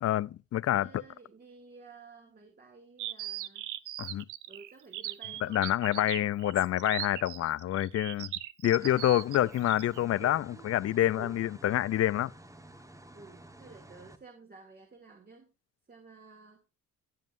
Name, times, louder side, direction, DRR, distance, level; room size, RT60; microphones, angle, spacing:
voice 1, 0.0-1.0 4.0-4.2 5.4-8.3 8.6-12.3, left 12 dB, 55° left, 0.5 m, -27 dB
voice 2, 0.7-3.7 4.5-5.7 8.8-9.0 10.2-10.7 11.2-11.8 13.1-15.5 15.9-16.7, right 3 dB, 30° right, 2.6 m, -52 dB
sound 1, 3.0-10.0, right 14 dB, 80° right, 0.8 m, -39 dB
sound 2, 8.6-14.2, right 1 dB, 10° right, 1.3 m, -52 dB
16.0 x 7.5 x 2.6 m
cardioid pair, 90°, 30 cm